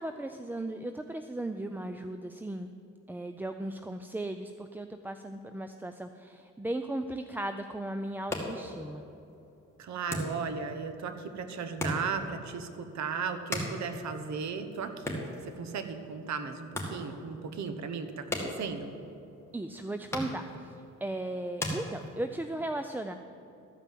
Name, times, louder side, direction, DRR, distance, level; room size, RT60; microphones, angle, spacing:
voice 1, 0.0-2.7 3.1-9.0 19.5-23.1, right 1 dB, 5° right, 7 dB, 0.3 m, -36 dB
sound 1, 8.0-22.5, left 1 dB, 10° left, 2.1 m, -40 dB
voice 2, 9.8-15.2 15.4-18.9, right 5 dB, 65° right, 8 dB, 1.0 m, -36 dB
13.0 x 5.4 x 7.6 m, 2.7 s
cardioid pair, 90°, 30 cm